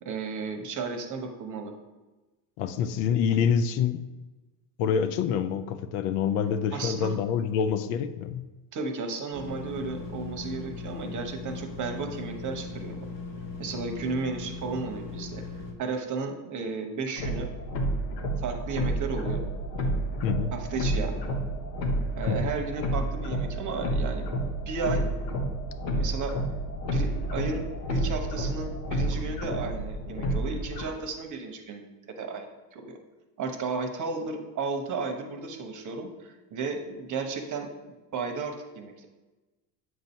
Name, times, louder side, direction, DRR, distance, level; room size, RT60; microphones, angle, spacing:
voice 1, 0.0-1.7 6.7-7.2 8.7-13.0 13.6-15.4 15.8-17.5 18.4-19.5 20.5-21.2 22.2-25.1 25.9-26.3 26.9-33.0 33.4-37.7 38.1-39.1, right 4 dB, 35° right, 4 dB, 1.0 m, -34 dB
voice 2, 2.6-4.0 4.8-8.4 20.2-20.5 22.3-22.4, left 7 dB, 65° left, 10 dB, 0.6 m, -26 dB
sound 1, 9.3-15.7, left 4 dB, 40° left, 1.4 m, -38 dB
sound 2, 17.2-30.8, right 1 dB, 85° left, 1.1 m, -30 dB
7.8 x 2.7 x 5.3 m, 1.1 s
hypercardioid pair, 90°, 49 cm